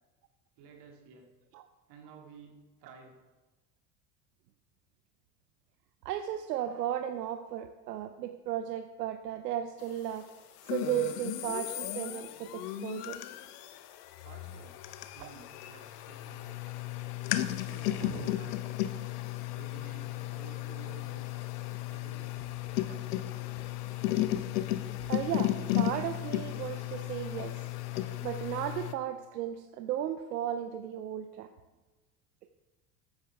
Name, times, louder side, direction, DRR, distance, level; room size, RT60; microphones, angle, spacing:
voice 1, 0.6-1.3 1.9-3.2 14.2-14.8 15.1-16.4 17.3-18.6 19.5-21.5 21.9-22.4, right 5 dB, 55° right, 1 dB, 2.2 m, -53 dB
voice 2, 6.0-10.3 10.7-13.2 15.2-15.3 18.0-18.3 22.9-23.0 25.1-27.6 27.9-31.5, right 11 dB, 85° right, 8 dB, 0.6 m, -35 dB
sound 1, 10.6-28.9, left 14 dB, 70° left, 0.7 m, -35 dB
11.0 x 9.0 x 3.5 m, 1.2 s
hypercardioid pair, 70°, 47 cm